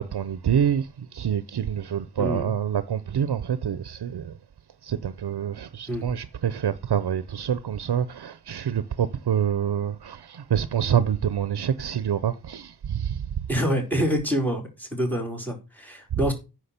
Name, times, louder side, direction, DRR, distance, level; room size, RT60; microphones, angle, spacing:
voice 1, 0.0-4.3 4.8-13.2 16.1-16.3, right 8 dB, 80° right, 0.7 m, -26 dB
voice 2, 2.2-2.5 5.9-6.2 13.5-16.3, equal, 5° left, 4.4 m, -26 dB
9.8 x 6.3 x 6.7 m
wide cardioid pair, 95°, 38 cm